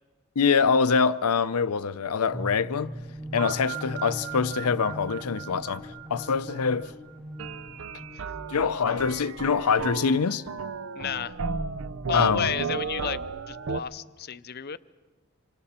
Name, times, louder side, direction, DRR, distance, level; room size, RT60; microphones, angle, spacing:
voice 1, 0.4-2.9 3.3-6.9 8.5-10.4 12.1-12.5, left 5 dB, 85° left, 0.6 m, -24 dB
sound 1, 2.3-10.1, equal, 5° left, 0.8 m, -41 dB
sound 2, 3.4-7.3, right 10 dB, 45° right, 5.3 m, -40 dB
sound 3, 7.4-13.8, right 4 dB, 60° right, 0.6 m, -34 dB
voice 2, 10.9-11.4 12.1-14.8, left 7 dB, 45° left, 0.6 m, -31 dB
26.0 x 26.0 x 4.3 m
head